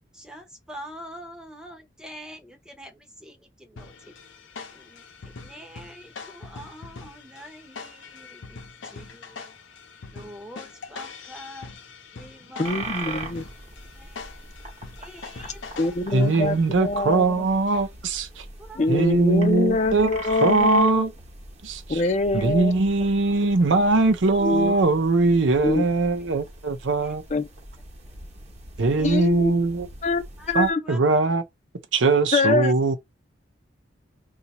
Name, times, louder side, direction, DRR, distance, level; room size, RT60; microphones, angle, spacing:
voice 1, 0.1-4.2 4.7-9.5 10.1-11.7 12.1-13.4 13.9-14.5 15.0-16.3 18.6-18.9 22.2-22.4 27.0-27.2 28.8-29.3 30.4-30.5 30.8-31.0 32.4-32.5, equal, 5° right, 0.7 m, -45 dB
sound 1, 3.8-16.9, left 4 dB, 85° left, 0.7 m, -43 dB
voice 2, 12.6-13.4 15.4-17.4 18.8-21.1 21.9-22.7 24.4-24.7 25.6-25.9 27.3-27.5 28.9-29.6 30.0-30.8 32.3-32.9, left 2 dB, 40° left, 0.5 m, -25 dB
sound 2, 12.6-30.7, right 2 dB, 35° right, 0.9 m, -41 dB
voice 3, 16.1-18.4 18.9-20.1 20.4-21.1 21.6-22.0 22.3-27.2 28.8-29.9 30.5-31.4 31.9-32.9, right 3 dB, 85° right, 0.6 m, -21 dB
2.8 x 2.4 x 4.0 m
head